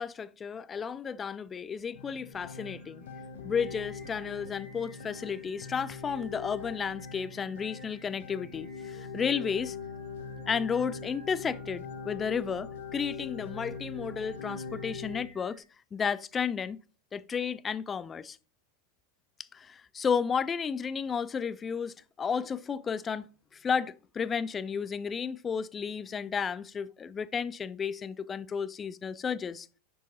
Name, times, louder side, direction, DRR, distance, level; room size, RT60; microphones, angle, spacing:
voice 1, 0.0-3.0 3.4-9.8 10.5-15.6 15.9-16.8 17.1-18.4 19.5-29.7, left 6 dB, 20° left, 0.4 m, -33 dB
sound 1, 1.9-15.2, left 5 dB, 55° left, 0.8 m, -42 dB
Singing, 2.3-15.6, right 2 dB, 25° right, 2.0 m, -58 dB
10.5 x 4.6 x 2.7 m
figure-of-eight pair, 90°, 0 cm